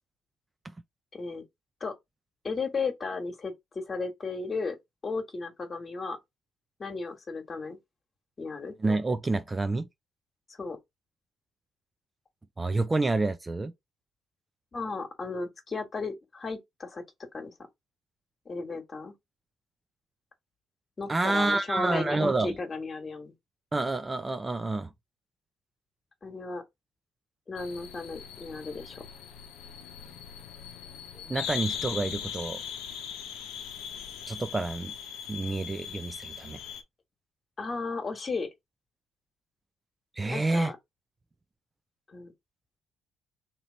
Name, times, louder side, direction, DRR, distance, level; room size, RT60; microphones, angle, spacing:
voice 1, 1.1-1.4 1.8-1.9 2.4-4.8 5.0-6.2 6.8-7.8 8.4-8.8 10.5-10.8 14.7-17.0 17.3-17.5 18.4-19.1 21.0-23.3 26.2-26.6 27.5-29.0 37.6-38.5 40.2-40.8 42.1-42.3, left 4 dB, 40° left, 1.4 m, -34 dB
voice 2, 8.8-9.9 12.6-13.7 21.1-22.6 23.7-24.9 31.1-32.6 34.3-34.9 35.3-36.6 40.2-40.7, right 2 dB, 25° right, 0.5 m, -28 dB
sound 1, 27.6-36.8, left 8 dB, 80° left, 0.7 m, -39 dB
3.0 x 2.9 x 3.8 m
supercardioid pair, 60°, 0 cm